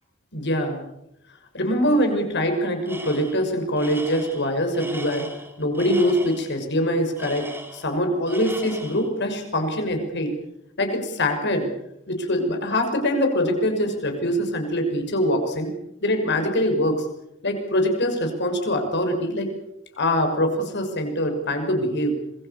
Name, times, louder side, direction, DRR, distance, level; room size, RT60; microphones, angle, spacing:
voice 1, 0.3-0.8 1.5-5.3 5.6-10.3 10.8-11.7 12.1-15.7 16.0-17.1 17.4-19.5 20.0-22.2, equal, 60° left, 5 dB, 6.4 m, -23 dB
Tools, 2.9-3.4 3.8-6.5 7.2-8.0 8.3-9.1, right 1 dB, 10° right, 4.5 m, -38 dB
26.5 x 22.5 x 7.0 m, 0.82 s
head